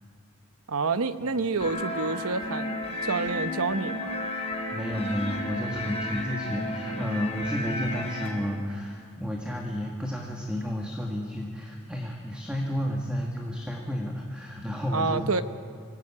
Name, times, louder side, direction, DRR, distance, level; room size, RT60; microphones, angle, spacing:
voice 1, 0.7-4.2 14.9-15.4, right 4 dB, 80° right, 11 dB, 1.0 m, -28 dB
sound 1, 1.6-8.3, left 1 dB, 30° left, 4.4 m, -32 dB
voice 2, 4.7-15.3, equal, 5° right, -1 dB, 1.9 m, -32 dB
25.5 x 18.0 x 8.7 m, 2.3 s
head